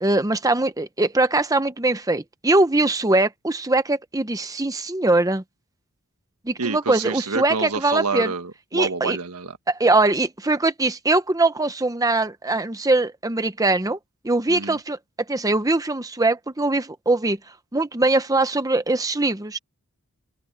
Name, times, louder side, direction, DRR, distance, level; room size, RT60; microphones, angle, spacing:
voice 1, 0.0-5.4 6.5-8.3 8.7-9.2 9.7-14.0 14.2-15.0 15.3-17.4 17.7-19.6, right 2 dB, 15° right, 0.8 m, -21 dB
voice 2, 6.6-9.6 14.5-14.8, right 4 dB, 85° right, 1.6 m, -28 dB
open air
head